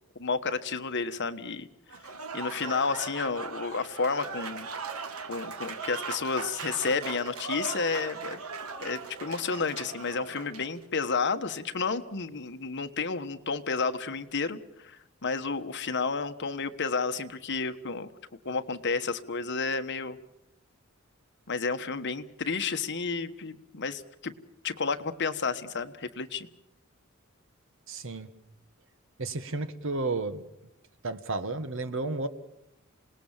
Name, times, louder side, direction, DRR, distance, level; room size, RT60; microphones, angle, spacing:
voice 1, 0.2-1.7 2.3-4.7 5.3-8.4 8.8-18.1 18.4-20.2 21.5-24.3 24.6-26.5, left 4 dB, 55° left, 9 dB, 1.3 m, -31 dB
Applause / Crowd, 1.9-10.7, right 4 dB, 85° right, 1.7 m, -39 dB
voice 2, 27.9-28.3 29.2-30.4 31.0-32.3, right 3 dB, 65° right, 12 dB, 1.5 m, -32 dB
27.5 x 19.0 x 7.4 m, 0.84 s
head